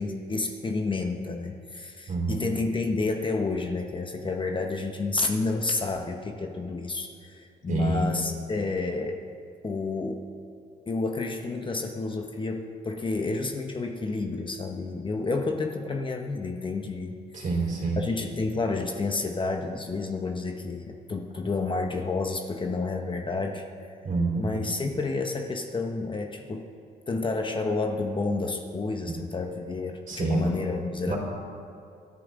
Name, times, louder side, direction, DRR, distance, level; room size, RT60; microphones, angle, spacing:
voice 1, 0.0-9.2 9.6-10.3 10.9-17.4 18.0-23.7 24.3-26.7 27.1-31.1, left 3 dB, 25° left, 3 dB, 1.0 m, -30 dB
voice 2, 2.1-2.5 7.7-8.0 17.3-18.0 24.0-24.5 30.1-30.5 31.1-31.2, right 3 dB, 45° right, -1 dB, 3.9 m, -27 dB
26.5 x 10.0 x 3.8 m, 2.4 s
cardioid pair, 105°, 18 cm